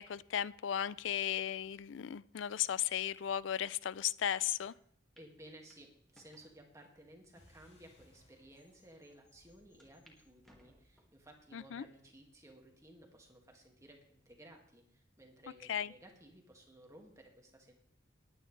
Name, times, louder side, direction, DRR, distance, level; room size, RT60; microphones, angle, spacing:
voice 1, 0.0-4.7 11.5-11.8 15.7-15.9, left 10 dB, 75° left, 19 dB, 0.4 m, -35 dB
sound 1, 4.7-4.8 5.2-5.3 5.7-6.6 7.2-7.3 8.1-8.2 8.4-8.5 9.8-10.2 10.4-11.2 11.8-12.2 12.7-12.8 14.0-14.4, equal, ahead, 2.0 m, -66 dB
voice 2, 5.2-17.7, right 1 dB, 15° right, 2 dB, 2.1 m, -58 dB
sound 2, 7.4-12.3, left 1 dB, 35° left, 4.1 m, -68 dB
19.5 x 9.6 x 3.3 m, 0.66 s
head